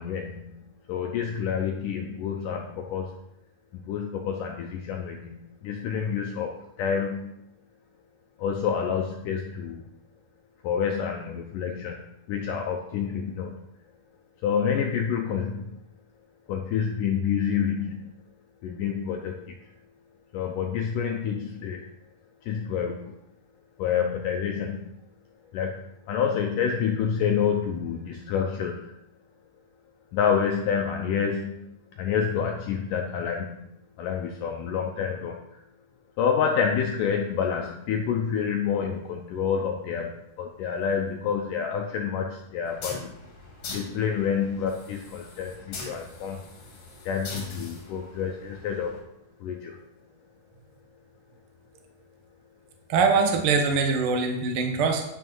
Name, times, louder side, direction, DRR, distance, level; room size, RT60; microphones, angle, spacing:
voice 1, 0.0-3.1 3.7-7.3 8.4-9.8 10.6-13.6 14.4-15.8 16.5-18.1 18.6-19.5 20.3-21.9 22.4-23.2 23.8-24.9 25.5-28.9 30.1-33.7 34.0-35.4 36.2-43.1 43.7-46.4 47.0-49.0 49.4-49.8, left 7 dB, 80° left, 2 dB, 1.9 m, -28 dB
sound 1, 42.7-49.0, left 3 dB, 45° left, 2.6 m, -42 dB
voice 2, 52.9-55.0, right 4 dB, 90° right, 3 dB, 1.2 m, -23 dB
9.7 x 6.0 x 5.4 m, 0.85 s
omnidirectional pair, 4.6 m